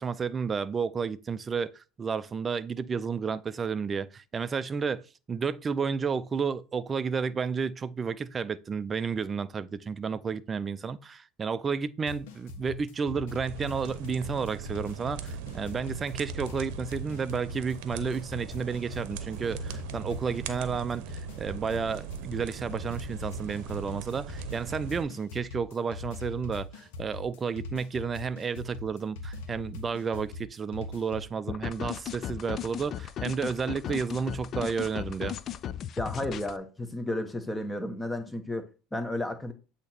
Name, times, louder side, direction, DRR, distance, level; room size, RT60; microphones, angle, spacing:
voice 1, 0.0-35.4, right 5 dB, 25° right, 0.4 m, -32 dB
sound 1, 12.1-31.3, left 2 dB, 80° left, 1.1 m, -41 dB
sound 2, 13.5-25.0, right 9 dB, 75° right, 0.8 m, -40 dB
sound 3, 31.5-36.6, left 10 dB, 40° left, 0.4 m, -36 dB
voice 2, 36.0-39.5, left 1 dB, 10° left, 0.9 m, -33 dB
8.1 x 2.9 x 4.3 m
supercardioid pair, 100°, 0 cm